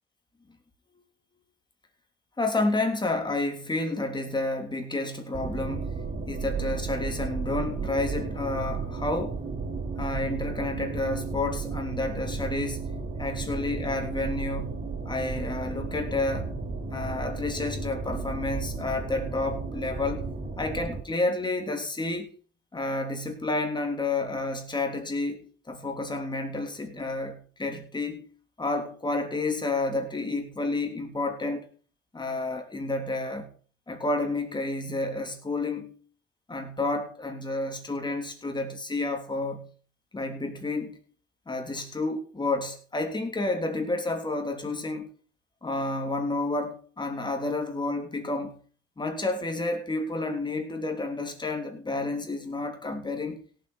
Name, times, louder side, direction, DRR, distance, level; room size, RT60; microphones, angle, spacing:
voice 1, 2.4-9.4 10.0-14.8 15.0-16.6 16.9-20.3 20.6-22.3 22.7-28.3 28.6-31.7 32.1-33.5 33.9-36.0 36.5-39.7 40.1-41.0 41.5-45.1 45.6-48.6 49.0-53.4, left 2 dB, 20° left, 3.3 m, -30 dB
sound 1, 5.3-21.0, right 4 dB, 50° right, 4.2 m, -34 dB
17.0 x 7.9 x 4.4 m
cardioid pair, 90°, 20 cm